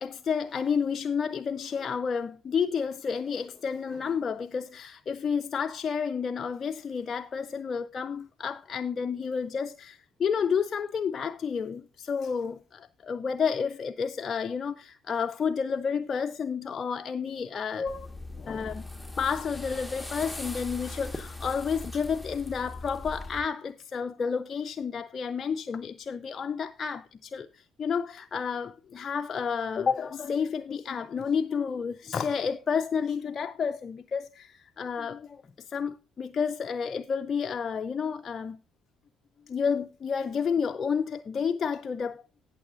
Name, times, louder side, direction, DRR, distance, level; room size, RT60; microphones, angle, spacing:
voice 1, 0.0-18.1 18.3-18.8 19.2-38.6 39.5-42.2, left 6 dB, 45° left, 0.4 m, -30 dB
sound 1, 17.9-23.4, left 2 dB, ahead, 1.4 m, -40 dB
18.0 x 6.8 x 2.5 m
hypercardioid pair, 55°, 0 cm